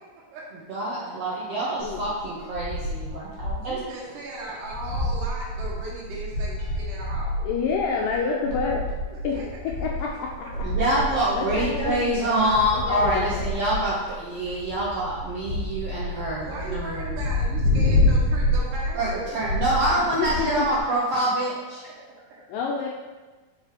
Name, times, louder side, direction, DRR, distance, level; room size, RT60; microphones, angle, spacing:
voice 1, 0.7-3.8 10.6-17.1 18.9-21.5, right 1 dB, 85° right, -7 dB, 1.3 m, -26 dB
voice 2, 1.5-2.0 7.4-8.9 9.2-9.4 9.8-10.5 11.3-12.5 12.7-13.5 20.2-20.7 22.5-22.9, left 5 dB, 85° left, -2 dB, 2.0 m, -28 dB
sound 1, 1.8-3.8 4.1-4.2 4.5-20.8, left 1 dB, 60° left, 2.7 m, -28 dB
voice 3, 3.6-7.5 9.1-9.4 10.1-10.5 16.4-19.3 22.6-22.7, right 2 dB, 65° right, -7 dB, 2.8 m, -37 dB
6.2 x 5.0 x 4.8 m, 1.3 s
omnidirectional pair, 4.5 m